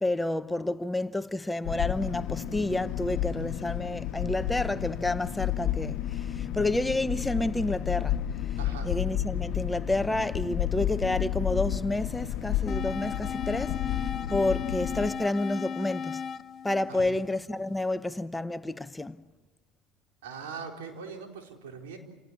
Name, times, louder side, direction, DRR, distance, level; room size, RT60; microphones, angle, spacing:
voice 1, 0.0-8.2 8.8-16.2 16.6-19.2, left 2 dB, 10° left, 0.8 m, -30 dB
sound 1, 1.6-15.1, left 11 dB, 60° left, 1.2 m, -31 dB
voice 2, 8.6-8.9 16.9-17.2 20.2-22.0, right 5 dB, 80° right, 4.2 m, -41 dB
sound 2, 12.7-17.7, left 7 dB, 40° left, 0.9 m, -36 dB
28.5 x 18.0 x 8.8 m
hypercardioid pair, 85°, 0 cm